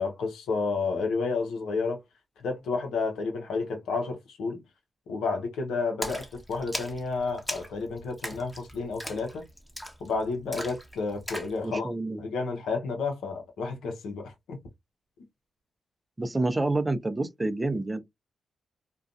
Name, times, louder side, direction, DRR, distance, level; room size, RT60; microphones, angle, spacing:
voice 1, 0.0-2.0 2.4-4.6 5.1-6.2 6.5-9.5 10.0-11.9 12.2-14.6, left 4 dB, 80° left, 0.7 m, -31 dB
Splash splatter, 6.0-11.6, equal, ahead, 0.9 m, -39 dB
voice 2, 11.6-12.2 16.2-18.0, right 2 dB, 20° right, 0.5 m, -28 dB
2.5 x 2.2 x 2.5 m
supercardioid pair, 45°, 0 cm